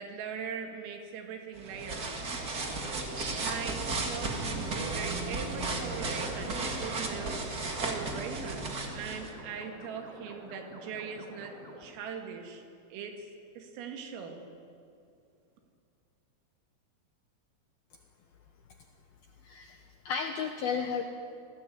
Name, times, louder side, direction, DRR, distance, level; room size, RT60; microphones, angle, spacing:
voice 1, 0.0-2.1 3.3-7.4 7.9-8.7 8.9-12.6 12.9-13.3 13.6-14.4, right 6 dB, 85° right, 4 dB, 4.9 m, -41 dB
sound 1, 1.5-9.3, right 3 dB, 45° right, 1.1 m, -34 dB
sound 2, 5.6-11.8, equal, 10° right, 3.3 m, -49 dB
voice 2, 19.4-21.0, left 6 dB, 75° left, 5 dB, 2.3 m, -33 dB
26.5 x 18.5 x 9.5 m, 2.5 s
omnidirectional pair, 5.8 m